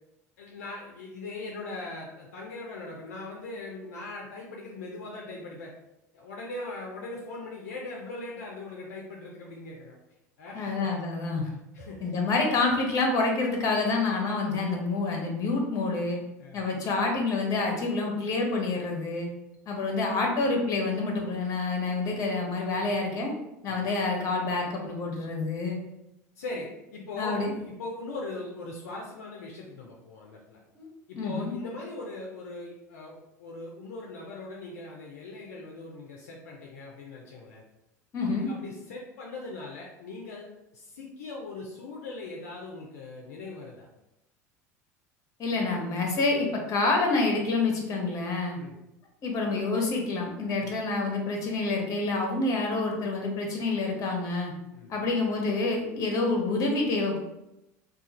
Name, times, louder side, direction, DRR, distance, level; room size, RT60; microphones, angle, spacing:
voice 1, 0.4-5.7 6.1-10.0 10.4-11.0 11.4-12.1 16.4-16.7 22.7-22.9 23.7-23.8 26.4-30.6 31.1-37.6 38.2-40.5 40.7-43.9 48.6-48.8 50.6-50.7 54.7-54.9, left 2 dB, 75° left, -1 dB, 0.5 m, -40 dB
voice 2, 10.5-11.5 12.0-16.2 16.5-19.3 19.7-23.3 23.6-25.8 27.2-27.5 30.8-30.9 31.1-31.5 38.1-38.5 45.4-48.6 49.2-54.5 54.9-57.2, left 3 dB, 40° left, 1 dB, 1.0 m, -27 dB
2.4 x 2.4 x 4.0 m, 0.89 s
hypercardioid pair, 75°, 8 cm